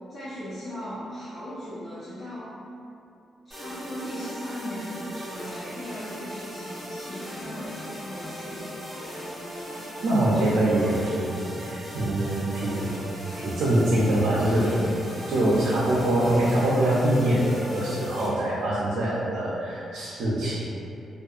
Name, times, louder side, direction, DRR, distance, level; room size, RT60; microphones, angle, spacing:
voice 1, 0.1-2.6 3.4-8.9, equal, 45° left, -12 dB, 0.6 m, -38 dB
sound 1, 3.5-18.3, equal, 20° left, 1.3 m, -38 dB
voice 2, 10.0-12.9 13.3-14.9 15.3-20.6, right 1 dB, 80° right, -8 dB, 0.4 m, -24 dB
2.6 x 2.4 x 2.3 m, 2.6 s
cardioid pair, 115°, 0 cm